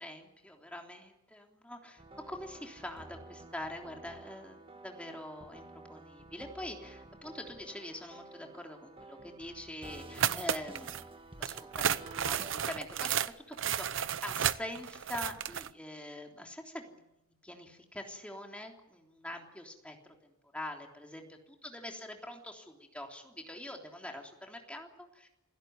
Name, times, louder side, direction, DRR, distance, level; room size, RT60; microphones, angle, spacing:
voice 1, 0.0-11.1 11.4-17.1 17.4-25.3, left 1 dB, 5° left, 2 dB, 3.4 m, -44 dB
sound 1, 2.0-12.5, right 2 dB, 25° right, 1.7 m, -51 dB
sound 2, 10.2-11.0 11.4-15.7, right 9 dB, 65° right, 0.8 m, -32 dB
27.5 x 16.5 x 9.5 m, 0.87 s
head